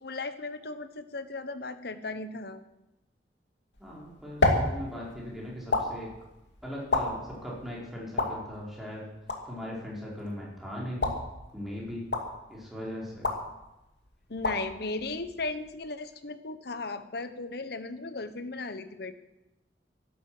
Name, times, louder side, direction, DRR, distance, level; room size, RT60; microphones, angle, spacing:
voice 1, 0.0-2.6 14.3-19.1, left 3 dB, 65° left, 11 dB, 1.2 m, -36 dB
sound 1, 3.7-15.9, left 2 dB, 85° left, 2.5 m, -33 dB
voice 2, 3.8-6.1 6.6-9.0 9.4-11.1 11.5-12.1 12.5-13.3, left 1 dB, ahead, -5 dB, 5.1 m, -39 dB
12.0 x 11.5 x 7.9 m, 0.95 s
head